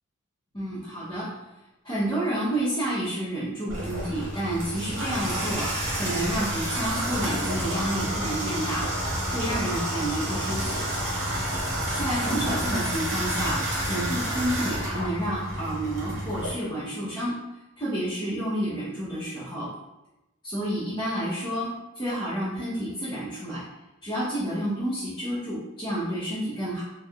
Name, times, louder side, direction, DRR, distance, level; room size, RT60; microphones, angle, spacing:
voice 1, 0.5-1.3 1.8-8.8 9.3-10.8 12.0-13.6 13.9-17.3 17.8-19.7 20.4-21.7 21.9-23.6 24.0-26.8, right 1 dB, 20° left, -12 dB, 0.9 m, -30 dB
Water tap faucet / Bathtub (filling or washing), 3.7-16.5, right 1 dB, 80° right, 1.5 m, -29 dB
4.4 x 2.4 x 2.4 m, 0.94 s
head